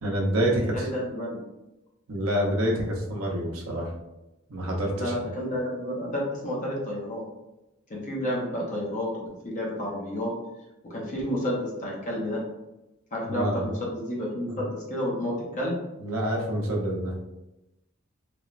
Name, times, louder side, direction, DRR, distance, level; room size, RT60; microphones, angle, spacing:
voice 1, 0.0-0.9 2.1-3.9 4.5-5.1 13.2-13.7 14.5-14.6 16.0-17.1, right 1 dB, 80° right, -1 dB, 0.6 m, -27 dB
voice 2, 0.6-1.4 5.0-7.2 7.9-10.3 10.8-12.4 13.1-15.8, equal, 40° left, -3 dB, 0.6 m, -30 dB
3.1 x 2.0 x 2.4 m, 0.96 s
head